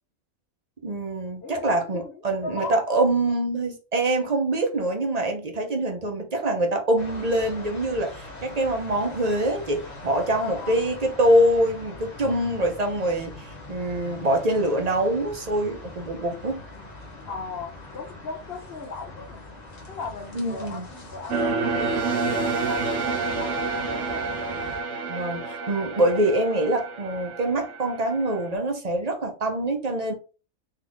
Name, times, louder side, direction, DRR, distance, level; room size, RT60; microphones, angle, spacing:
voice 1, 0.8-16.6 20.3-20.9 25.1-30.1, right 1 dB, 35° right, 1.0 m, -24 dB
voice 2, 1.4-3.1 10.4-10.9 17.2-19.4 19.9-24.3 26.0-26.3, left 4 dB, 55° left, 1.0 m, -38 dB
sound 1, 7.0-24.8, left 2 dB, 35° left, 1.1 m, -42 dB
sound 2, 21.3-28.5, right 4 dB, 65° right, 1.2 m, -29 dB
4.1 x 3.3 x 3.5 m
omnidirectional pair, 1.3 m